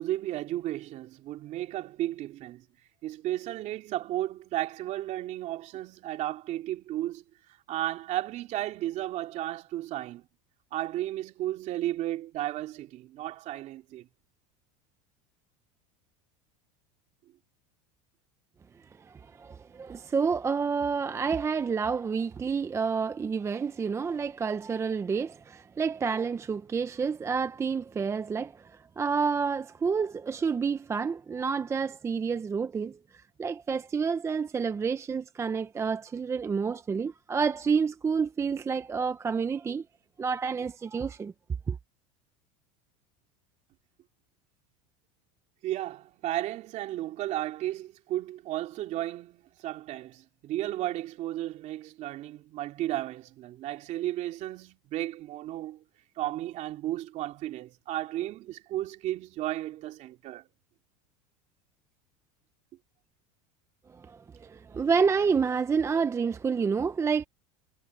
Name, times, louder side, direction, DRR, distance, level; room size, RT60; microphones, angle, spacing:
voice 1, 0.0-2.6 3.0-7.2 7.7-10.2 10.7-14.1 45.6-55.8 56.2-60.4, right 14 dB, 45° right, 3.0 m, -34 dB
voice 2, 19.0-39.8 40.2-41.3 41.7-41.8 63.9-67.2, right 5 dB, 15° right, 0.6 m, -29 dB
supercardioid pair, 130°, 16 cm